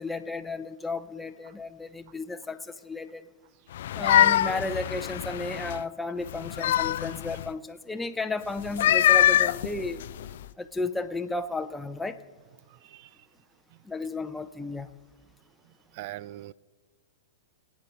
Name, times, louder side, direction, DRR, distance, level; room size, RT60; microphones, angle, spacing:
voice 1, 0.0-3.3 3.9-10.0 10.6-12.2 13.8-14.9, left 3 dB, 5° left, 0.9 m, -33 dB
sound 1, 3.7-5.8 6.3-7.5 8.6-10.5, left 12 dB, 65° left, 0.4 m, -24 dB
voice 2, 12.7-13.1 13.7-13.8 15.9-16.5, right 15 dB, 50° right, 0.4 m, -41 dB
25.5 x 8.9 x 4.1 m
hypercardioid pair, 110°, 0 cm